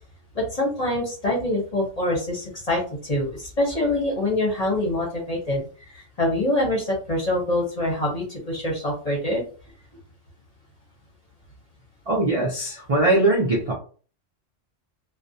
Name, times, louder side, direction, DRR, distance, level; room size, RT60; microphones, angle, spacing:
voice 1, 0.3-9.4, left 1 dB, 40° left, -2 dB, 0.7 m, -25 dB
voice 2, 12.1-13.7, right 2 dB, 50° right, -3 dB, 0.4 m, -21 dB
2.3 x 2.1 x 2.6 m, 0.40 s
omnidirectional pair, 1.3 m